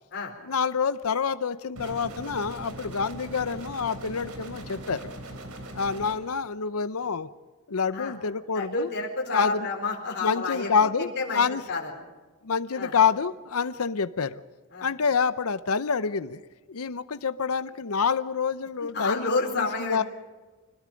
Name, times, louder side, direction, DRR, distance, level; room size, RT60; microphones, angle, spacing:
voice 1, 0.4-5.1 5.7-7.3 7.7-8.9 9.3-9.7 10.2-11.6 12.4-14.4 14.8-20.0, left 5 dB, 75° left, 13 dB, 0.7 m, -27 dB
sound 1, 1.8-6.2, right 1 dB, 75° right, 3.3 m, -40 dB
voice 2, 8.5-11.9 12.8-12.9 14.7-14.9 18.8-20.0, left 3 dB, 50° left, -1 dB, 4.2 m, -30 dB
26.0 x 20.5 x 5.2 m, 1.3 s
head